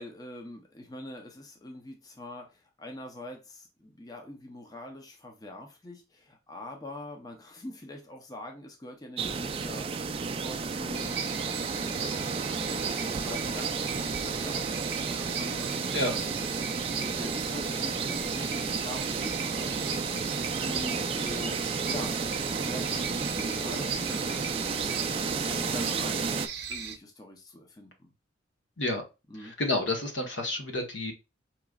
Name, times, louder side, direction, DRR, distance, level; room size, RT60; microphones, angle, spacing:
voice 1, 0.0-12.9 13.2-15.9 16.3-21.6 21.9-22.2 22.5-26.4 26.7-28.1 29.3-29.5, left 1 dB, 20° left, 0.6 m, -44 dB
sound 1, 9.2-26.5, right 4 dB, 30° right, 0.3 m, -32 dB
sound 2, 10.9-27.0, right 7 dB, 55° right, 0.7 m, -37 dB
voice 2, 29.4-31.1, left 2 dB, 80° left, 1.1 m, -30 dB
4.9 x 2.9 x 2.3 m
head